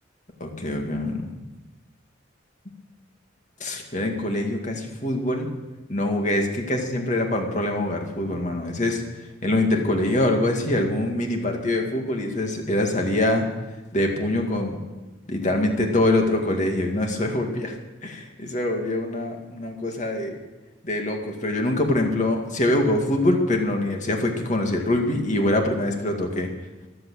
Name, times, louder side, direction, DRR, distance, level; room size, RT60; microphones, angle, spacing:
voice 1, 0.4-1.3 3.6-5.5 5.9-9.0 9.4-13.5 13.9-14.8 15.3-17.8 18.0-20.4 20.8-26.5, left 1 dB, 40° left, 2 dB, 2.1 m, -24 dB
14.0 x 11.5 x 6.4 m, 1.1 s
head